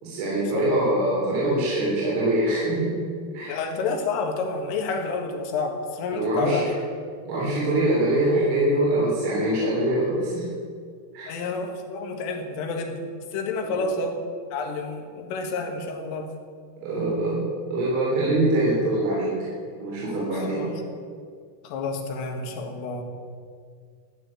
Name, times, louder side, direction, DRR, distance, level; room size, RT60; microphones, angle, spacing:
voice 1, 0.0-3.1 3.3-3.6 6.1-6.6 7.3-10.5 11.1-11.4 13.6-13.8 16.8-19.5 19.8-20.8, right 1 dB, 65° right, -6 dB, 5.9 m, -24 dB
voice 2, 3.5-6.8 11.3-13.0 13.3-14.2 14.5-16.3 20.3-20.7 21.6-23.0, left 3 dB, 75° left, 4 dB, 4.1 m, -29 dB
15.5 x 10.0 x 9.0 m, 2.1 s
omnidirectional pair, 5.9 m